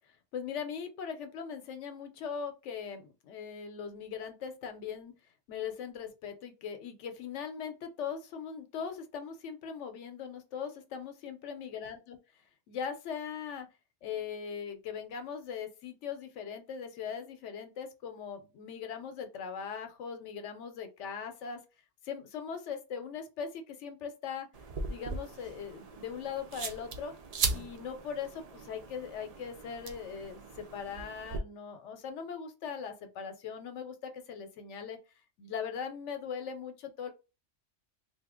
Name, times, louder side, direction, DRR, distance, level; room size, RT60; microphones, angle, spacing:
voice 1, 0.3-5.1 5.5-12.2 12.7-13.7 14.0-21.6 22.0-24.5 24.9-27.1 27.5-35.0 35.4-37.1, left 7 dB, 80° left, 0.9 m, -40 dB
sound 1, 24.5-31.4, right 4 dB, 80° right, 0.3 m, -39 dB
2.8 x 2.2 x 3.6 m
omnidirectional pair, 1.2 m